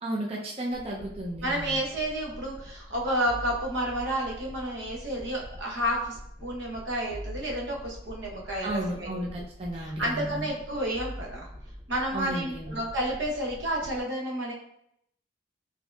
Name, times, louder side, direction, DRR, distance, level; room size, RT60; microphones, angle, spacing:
voice 1, 0.0-1.8 8.6-10.5 12.1-12.8, right 1 dB, 35° right, -2 dB, 0.5 m, -33 dB
sound 1, 0.7-14.0, equal, 30° left, 1.1 m, -44 dB
voice 2, 1.4-6.1 6.4-9.2 9.8-11.5 11.9-14.5, equal, 90° right, -2 dB, 0.9 m, -30 dB
4.3 x 2.7 x 2.3 m, 0.72 s
head